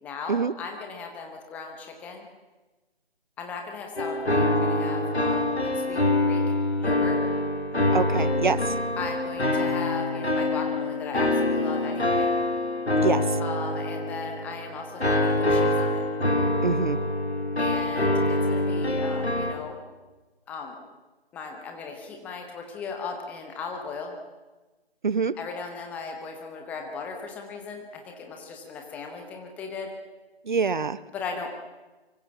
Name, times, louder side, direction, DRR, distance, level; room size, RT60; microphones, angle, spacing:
voice 1, 0.0-2.3 3.4-6.4 6.8-7.2 9.0-12.3 13.4-16.0 17.6-19.8 20.5-20.8 21.3-24.1 25.3-29.9 31.1-31.5, left 4 dB, 5° left, 3 dB, 1.0 m, -37 dB
sound 1, 4.0-19.5, left 1 dB, 90° left, 4.0 m, -25 dB
voice 2, 7.9-8.7 13.0-13.4 16.6-17.0 25.0-25.4 30.5-31.0, right 5 dB, 50° right, 17 dB, 1.0 m, -25 dB
24.0 x 24.0 x 7.2 m, 1.2 s
figure-of-eight pair, 155°, 31 cm